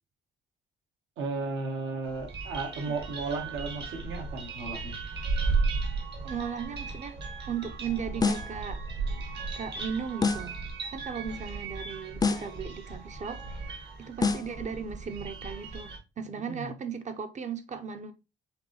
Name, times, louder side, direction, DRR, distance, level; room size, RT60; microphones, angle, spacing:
voice 1, 1.2-5.0 16.5-16.7, right 3 dB, 85° right, 1.3 m, -34 dB
sound 1, 2.0-16.0, right 4 dB, 60° right, 1.3 m, -35 dB
voice 2, 6.2-8.8 9.6-10.6 10.9-13.4 14.0-18.1, right 6 dB, 40° right, 0.6 m, -36 dB
sound 2, 8.2-8.6 10.2-10.6 12.2-12.6 14.2-14.6, left 4 dB, 20° left, 0.5 m, -27 dB
5.0 x 2.7 x 3.0 m
cardioid pair, 90°, 20 cm